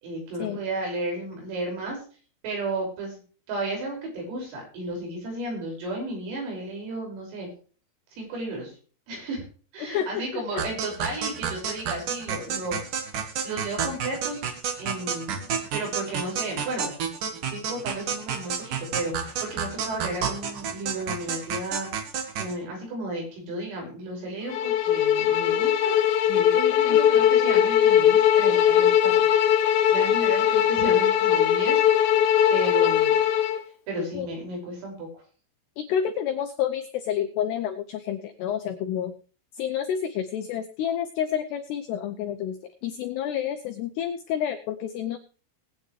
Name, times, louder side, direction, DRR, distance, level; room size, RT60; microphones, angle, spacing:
voice 1, 0.0-2.0 2.4-3.2 3.5-7.5 8.1-8.7 9.1-9.4 9.7-13.1 13.4-15.4 15.7-16.9 17.3-21.9 22.4-26.0 26.3-29.3 29.9-32.0 32.5-33.2 33.9-35.1, right 2 dB, 80° right, 0 dB, 8.4 m, -33 dB
voice 2, 9.9-10.2 10.5-10.6 26.9-27.0 34.0-34.3 35.8-39.1 39.6-42.6 42.8-45.2, left 9 dB, 85° left, 8 dB, 2.3 m, -29 dB
sound 1, 10.6-22.5, right 7 dB, 60° right, 2.2 m, -30 dB
Bowed string instrument, 24.5-33.6, left 10 dB, 70° left, 3.0 m, -20 dB
20.0 x 9.3 x 3.2 m, 0.39 s
omnidirectional pair, 5.9 m